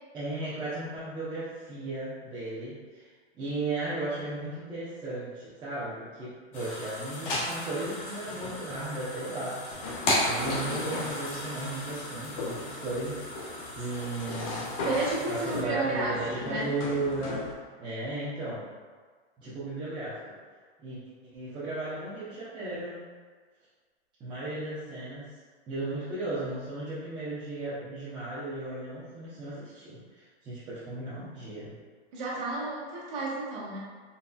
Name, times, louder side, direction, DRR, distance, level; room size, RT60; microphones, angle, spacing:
voice 1, 0.1-3.1 3.3-9.6 10.2-14.8 15.3-18.7 19.4-20.3 20.8-21.0 21.3-23.0 24.2-25.3 25.7-31.8, right 2 dB, 15° right, -12 dB, 0.6 m, -35 dB
sound 1, 6.5-15.6, left 1 dB, 50° left, 1.0 m, -35 dB
sound 2, 9.7-17.5, left 3 dB, 30° left, 0.4 m, -38 dB
voice 2, 14.8-16.7 32.1-33.8, right 3 dB, 40° right, -6 dB, 1.2 m, -32 dB
4.1 x 3.3 x 2.2 m, 1.5 s
hypercardioid pair, 150°, 34 cm